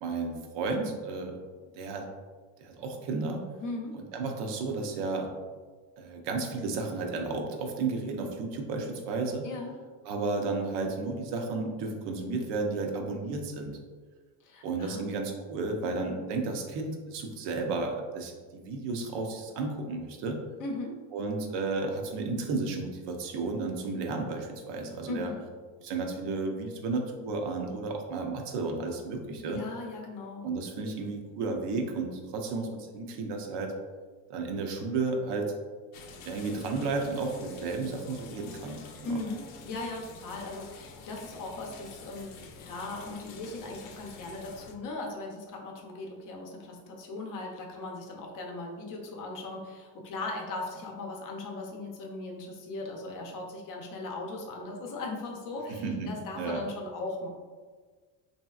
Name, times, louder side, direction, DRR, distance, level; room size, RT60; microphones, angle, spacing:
voice 1, 0.0-1.4 1.7-2.1 2.6-3.4 3.9-5.3 6.0-9.5 10.1-13.8 14.6-20.4 21.1-25.3 25.8-29.6 30.4-33.7 34.3-35.5 36.3-38.8 39.1-39.2 55.8-56.6, right 3 dB, 65° right, 3 dB, 0.6 m, -33 dB
voice 2, 3.6-4.0 9.4-9.7 14.4-15.0 20.6-21.0 25.1-25.4 29.4-30.5 39.0-57.3, left 2 dB, 45° left, 1 dB, 0.6 m, -38 dB
sound 1, 35.9-44.7, left 4 dB, 85° left, 0.6 m, -48 dB
3.2 x 2.7 x 2.3 m, 1.5 s
cardioid pair, 125°, 45 cm